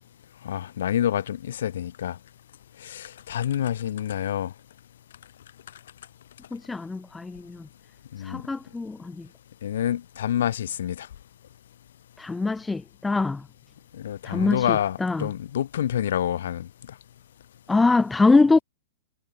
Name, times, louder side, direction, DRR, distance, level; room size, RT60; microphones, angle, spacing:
voice 1, 0.4-2.2 2.8-4.5 8.1-8.4 9.6-11.1 13.9-16.7, left 10 dB, 70° left, 6.1 m, -27 dB
voice 2, 6.5-7.6 8.2-9.3 12.2-13.4 14.2-15.3 17.7-18.6, left 3 dB, 5° left, 1.7 m, -23 dB
supercardioid pair, 175°, 0 cm